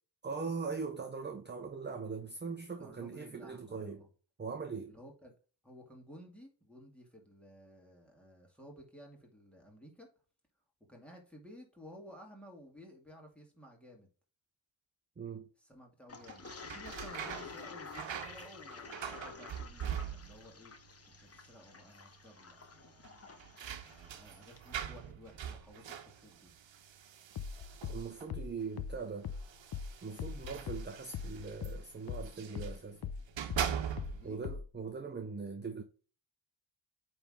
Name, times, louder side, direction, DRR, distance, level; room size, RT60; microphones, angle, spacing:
voice 1, 0.2-4.0 4.4-4.9 15.2-15.5 27.9-29.3 30.0-33.1 34.2-35.8, right 5 dB, 25° right, 0.7 m, -41 dB
voice 2, 2.8-4.1 4.9-5.3 5.6-10.1 10.9-14.1 15.6-20.7 21.0-23.0 23.8-26.5 34.1-34.4, equal, 5° left, 2.2 m, -55 dB
Toilet flush, 16.1-24.7, left 5 dB, 30° left, 1.0 m, -50 dB
sound 1, 16.2-20.6 20.8-21.5 21.8-21.9 23.0-28.4 29.3-32.8 33.2-34.4, right 8 dB, 75° right, 1.0 m, -42 dB
sound 2, 27.4-32.3 32.6-34.8, left 6 dB, 55° left, 0.6 m, -40 dB
8.8 x 3.5 x 3.6 m
wide cardioid pair, 120°, 45 cm